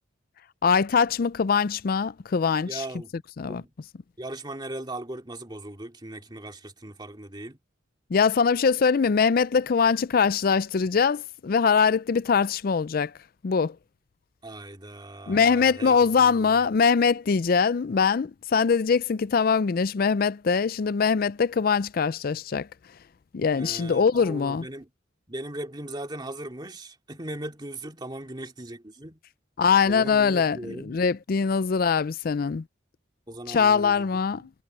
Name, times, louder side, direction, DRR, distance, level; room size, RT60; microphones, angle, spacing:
voice 1, 0.6-2.8 3.4-3.6 8.1-13.1 13.4-13.8 15.3-22.7 23.3-24.7 29.6-32.6 33.5-34.5, left 5 dB, 50° left, 0.4 m, -22 dB
voice 2, 2.7-3.2 3.5-3.7 4.2-7.6 14.4-16.7 23.6-24.9 25.3-29.2 29.8-31.0 33.3-34.1 34.3-34.5, right 1 dB, 25° right, 2.4 m, -38 dB
head